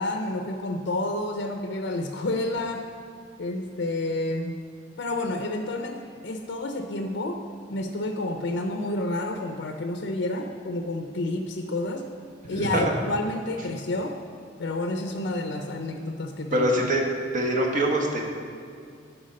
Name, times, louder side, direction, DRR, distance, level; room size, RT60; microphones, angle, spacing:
voice 1, 0.0-2.9 3.4-4.6 5.0-7.4 7.7-12.0 12.5-14.2 14.6-16.7, left 2 dB, 65° left, 5 dB, 0.5 m, -29 dB
voice 2, 12.6-12.9 16.5-17.0 17.3-18.2, right 1 dB, 45° right, 1 dB, 1.2 m, -23 dB
10.5 x 4.5 x 5.3 m, 2.2 s
head